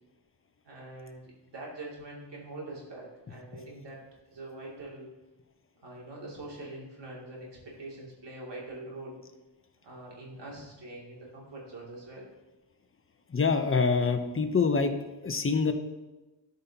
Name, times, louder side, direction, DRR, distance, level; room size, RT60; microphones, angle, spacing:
voice 1, 0.6-4.0 4.3-5.1 5.8-9.2 9.8-12.2, right 2 dB, 65° right, -4 dB, 2.9 m, -44 dB
voice 2, 13.3-14.9 15.2-15.7, left 4 dB, 30° left, 7 dB, 0.9 m, -25 dB
12.5 x 5.4 x 2.9 m, 1.1 s
cardioid pair, 85°, 45 cm